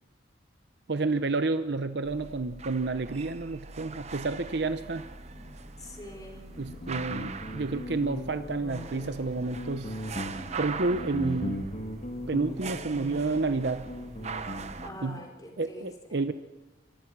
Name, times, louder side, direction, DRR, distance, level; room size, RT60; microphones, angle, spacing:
voice 1, 0.9-5.1 6.6-9.9 10.6-11.7 12.3-13.9 15.0-15.2 15.6-16.3, right 3 dB, 65° right, 10 dB, 0.8 m, -30 dB
sound 1, 2.0-14.9, right 5 dB, 35° right, 0.9 m, -42 dB
sound 2, 3.5-15.2, left 1 dB, ahead, 7.1 m, -53 dB
voice 2, 5.8-6.5 14.8-16.2, left 1 dB, 20° left, 1 dB, 4.2 m, -45 dB
Guitar, 6.5-15.0, equal, 45° left, 2.6 m, -38 dB
28.5 x 23.5 x 6.1 m, 1.1 s
head